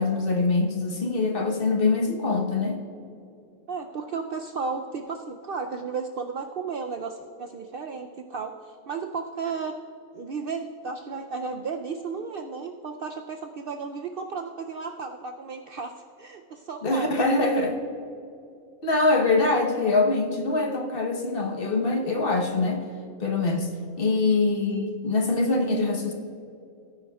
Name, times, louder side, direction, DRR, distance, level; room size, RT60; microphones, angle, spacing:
voice 1, 0.0-2.8 16.8-17.7 18.8-22.8 23.2-23.7 24.0-26.1, left 3 dB, 50° left, 2 dB, 1.1 m, -24 dB
voice 2, 3.7-9.7 10.1-15.9 16.2-17.3, right 5 dB, 65° right, 5 dB, 0.6 m, -34 dB
17.0 x 9.7 x 2.3 m, 2.6 s
omnidirectional pair, 1.3 m